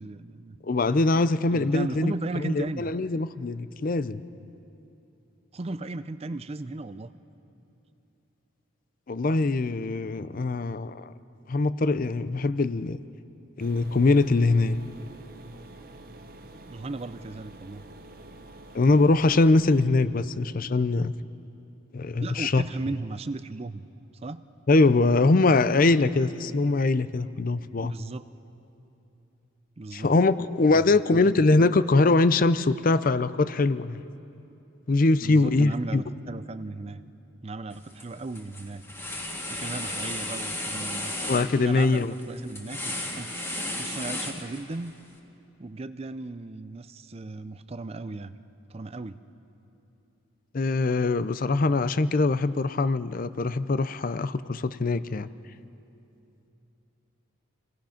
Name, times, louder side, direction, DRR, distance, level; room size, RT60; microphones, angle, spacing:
voice 1, 0.0-0.6 1.5-2.9 5.5-7.1 16.7-17.8 22.2-23.9 24.2-24.4 27.8-28.2 29.8-30.1 30.7-31.4 35.2-37.0 37.4-38.8 39.5-41.1 41.6-43.3 43.8-44.9 45.6-48.4 48.7-49.2, right 2 dB, 30° right, 13 dB, 0.5 m, -36 dB
voice 2, 0.6-4.2 9.1-11.1 11.5-13.0 13.6-14.8 18.7-21.1 21.9-22.6 24.7-27.9 29.9-34.0 34.9-36.0 41.3-42.1 50.5-55.3, left 3 dB, 40° left, 14 dB, 0.5 m, -22 dB
sound 1, 13.6-19.8, right 2 dB, 45° right, 0.9 m, -47 dB
sound 2, 37.7-38.0 38.3-44.9, left 1 dB, 10° left, 1.9 m, -34 dB
27.5 x 18.0 x 5.8 m, 2.8 s
head